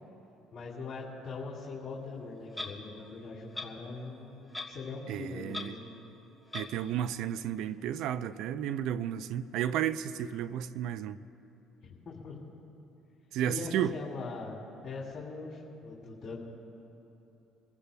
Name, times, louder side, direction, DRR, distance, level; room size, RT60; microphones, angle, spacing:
voice 1, 0.5-5.9 11.8-12.4 13.5-16.4, left 4 dB, 40° left, 2.9 m, -41 dB
Clock, 2.5-2.7 3.5-3.7 4.5-4.8 5.1-5.2 5.5-5.7 6.5-6.7, left 3 dB, 10° left, 1.5 m, -38 dB
voice 2, 5.1-5.8 6.5-11.2 13.3-13.9, right 10 dB, 75° right, 0.4 m, -33 dB
28.0 x 15.0 x 2.3 m
supercardioid pair, 90°, 0 cm